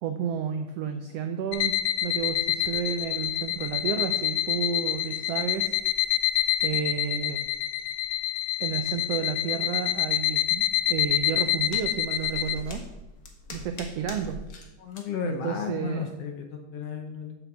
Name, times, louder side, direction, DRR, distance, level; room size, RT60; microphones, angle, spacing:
voice 1, 0.0-1.7 2.0-5.7 6.6-7.4 8.6-12.8 13.5-14.4 15.2-16.0, right 7 dB, 85° right, 7 dB, 1.4 m, -31 dB
sound 1, 1.5-12.6, left 13 dB, 85° left, 1.5 m, -27 dB
sound 2, 11.1-14.7 14.9-15.0, left 2 dB, 45° left, 1.2 m, -42 dB
voice 2, 14.8-17.4, left 6 dB, 65° left, 4 dB, 1.6 m, -34 dB
8.0 x 6.9 x 7.1 m, 0.99 s
omnidirectional pair, 3.6 m